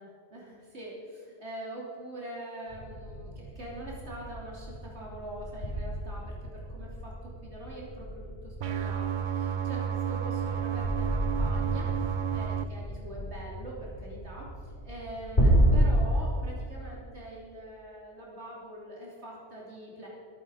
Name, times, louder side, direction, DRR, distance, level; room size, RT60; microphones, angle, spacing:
voice 1, 0.0-7.1 7.4-20.1, right 1 dB, 70° right, -4 dB, 3.4 m, -43 dB
sound 1, 2.7-15.8, right 1 dB, 40° left, 4.4 m, -31 dB
sound 2, 8.6-12.6, right 8 dB, 50° right, 0.6 m, -31 dB
24.0 x 9.6 x 5.0 m, 2.4 s
omnidirectional pair, 1.2 m